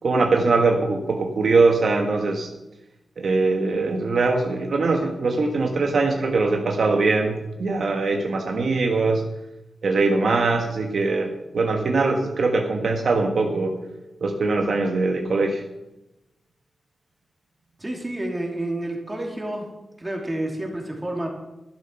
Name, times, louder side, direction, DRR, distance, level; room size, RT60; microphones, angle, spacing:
voice 1, 0.0-2.5 3.2-9.2 9.8-13.8 14.2-15.6, right 3 dB, 60° right, 3 dB, 1.3 m, -22 dB
Keyboard (musical), 11.6-14.8, right 4 dB, 80° right, 2.6 m, -41 dB
voice 2, 17.8-19.7 20.0-21.3, right 1 dB, 15° right, 0 dB, 2.9 m, -29 dB
11.5 x 11.5 x 5.8 m, 0.96 s
wide cardioid pair, 135°, 0 cm